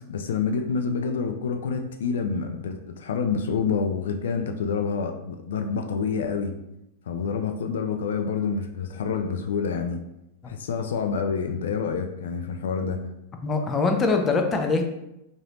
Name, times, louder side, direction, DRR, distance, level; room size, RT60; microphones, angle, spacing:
voice 1, 0.1-6.6 7.1-10.0 10.4-13.0, left 5 dB, 80° left, 6 dB, 0.3 m, -27 dB
voice 2, 13.4-14.8, left 3 dB, 20° left, 4 dB, 0.5 m, -23 dB
3.2 x 2.6 x 2.9 m, 0.86 s
hypercardioid pair, 120°, 0 cm